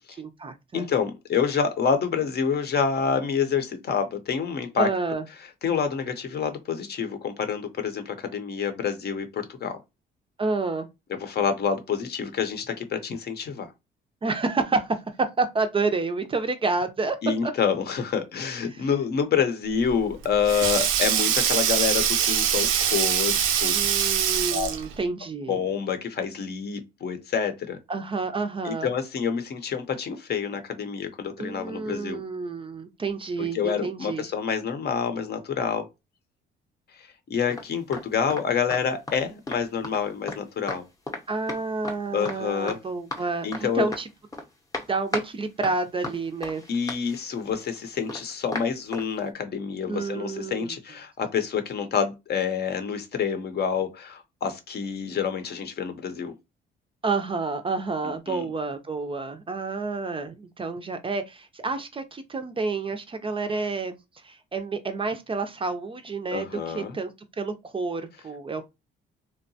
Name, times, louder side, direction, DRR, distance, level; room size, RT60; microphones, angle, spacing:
voice 1, 0.2-0.9 4.8-5.2 10.4-10.9 14.2-17.2 17.4-17.5 18.7-18.9 23.7-25.6 27.9-28.9 31.4-34.2 41.3-44.1 44.9-46.6 49.9-50.8 57.0-67.1 67.4-68.6, right 3 dB, 25° right, 0.4 m, -29 dB
voice 2, 0.7-4.9 5.6-9.8 11.2-13.7 17.2-23.7 24.5-24.7 25.5-27.8 28.6-32.2 33.4-35.9 37.0-40.8 42.1-42.8 43.4-43.9 46.7-56.3 58.3-58.4 66.3-67.0, left 6 dB, 55° left, 0.7 m, -27 dB
Sink (filling or washing), 19.8-25.0, right 9 dB, 85° right, 0.4 m, -23 dB
sound 1, 37.5-38.0 38.3-38.5 38.7-39.2 39.5-40.4 40.7-40.8 41.1-41.2 41.5-42.0 42.2-42.4 42.7-43.2 43.5-43.6 43.9-44.5 44.7-45.3 45.6-49.1, left 2 dB, 15° left, 0.6 m, -35 dB
2.8 x 2.1 x 2.6 m
cardioid pair, 90°, 20 cm